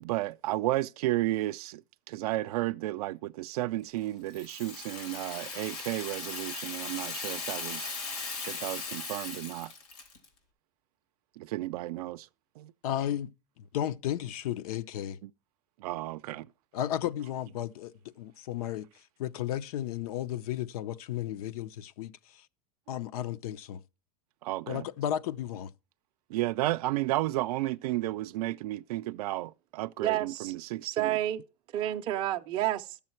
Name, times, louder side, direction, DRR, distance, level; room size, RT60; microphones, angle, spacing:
voice 1, 0.0-1.8 2.1-8.0 8.5-9.7 11.4-12.3 12.6-12.7 15.2-15.3 15.8-16.5 24.4-24.9 26.3-31.2, right 16 dB, 75° right, 0.5 m, -33 dB
Rattle (instrument), 4.3-10.3, left 4 dB, 90° left, 3.5 m, -38 dB
voice 2, 12.8-13.3 13.6-15.2 16.7-18.9 19.2-22.4 22.9-23.8 24.7-25.7, left 11 dB, 70° left, 0.6 m, -34 dB
voice 3, 30.0-30.6 30.8-31.4 31.7-33.0, right 13 dB, 25° right, 0.5 m, -30 dB
13.0 x 7.0 x 4.4 m
supercardioid pair, 170°, 20 cm